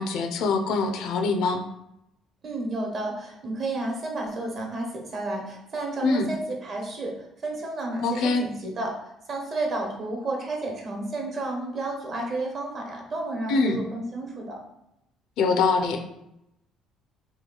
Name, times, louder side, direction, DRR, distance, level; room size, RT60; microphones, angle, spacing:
voice 1, 0.0-1.6 6.0-6.3 8.0-8.4 13.5-13.8 15.4-16.0, left 4 dB, 75° left, 5 dB, 0.5 m, -24 dB
voice 2, 2.4-14.6, right 2 dB, 45° right, 1 dB, 1.0 m, -32 dB
3.0 x 2.3 x 3.8 m, 0.84 s
supercardioid pair, 90°, 0 cm